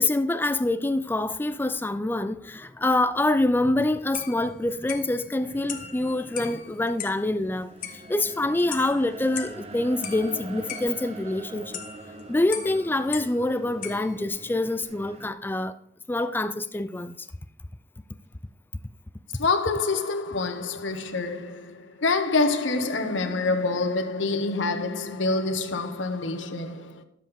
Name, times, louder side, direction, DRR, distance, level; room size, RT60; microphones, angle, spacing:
voice 1, 0.0-11.8 12.3-15.8 16.1-17.3, left 2 dB, 10° left, 0.3 m, -26 dB
sound 1, 3.8-3.9 4.1-7.4 7.8-9.7 10.0-13.5 13.8-14.5 14.8-14.9, left 9 dB, 45° left, 1.1 m, -40 dB
sound 2, 5.4-15.3, right 2 dB, 35° right, 0.9 m, -44 dB
voice 2, 19.4-27.0, left 3 dB, 80° left, 1.1 m, -26 dB
12.0 x 7.5 x 3.6 m
head